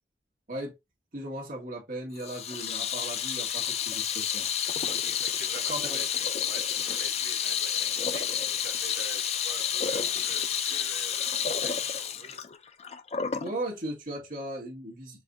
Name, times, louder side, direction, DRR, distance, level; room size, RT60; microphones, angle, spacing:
voice 1, 1.1-4.5 5.7-6.0 13.4-15.2, right 1 dB, 50° right, 1.7 m, -37 dB
Water tap faucet / Sink (filling or washing), 2.2-13.5, left 8 dB, 35° left, 0.4 m, -30 dB
voice 2, 4.8-12.4, right 3 dB, 85° right, 0.9 m, -46 dB
4.7 x 3.3 x 2.6 m
head